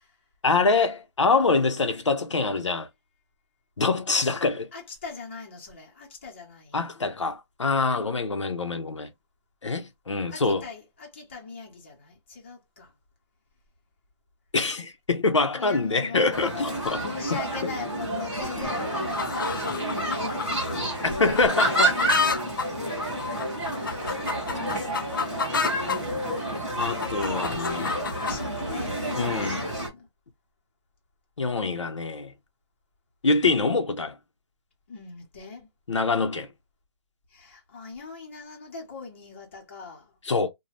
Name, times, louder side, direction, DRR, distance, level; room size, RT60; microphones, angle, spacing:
voice 1, 0.4-2.9 3.8-4.7 6.7-9.1 9.6-10.6 14.5-17.1 21.0-21.9 24.1-24.2 24.6-24.7 26.7-28.0 29.1-29.6 31.4-32.3 33.2-34.2 35.9-36.5 40.3-40.5, left 3 dB, 85° left, 0.8 m, -25 dB
voice 2, 4.7-6.9 10.3-12.9 15.5-21.5 23.7-26.8 27.5-30.1 34.9-35.7 37.3-40.1, left 4 dB, 25° left, 0.8 m, -40 dB
sound 1, 16.3-29.9, right 1 dB, ahead, 0.8 m, -29 dB
sound 2, 19.1-26.0 26.5-28.4, left 5 dB, 45° left, 0.4 m, -31 dB
2.7 x 2.3 x 3.2 m
hypercardioid pair, 170°, 15 cm